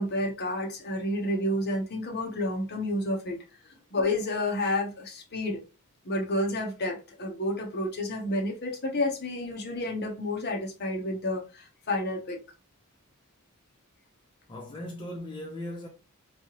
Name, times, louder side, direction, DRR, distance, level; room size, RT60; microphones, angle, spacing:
voice 1, 0.0-3.4 3.9-5.6 6.0-12.4, left 1 dB, 50° left, 0.9 m, -30 dB
voice 2, 14.5-15.9, left 1 dB, 20° left, 0.6 m, -38 dB
3.2 x 2.8 x 2.9 m
head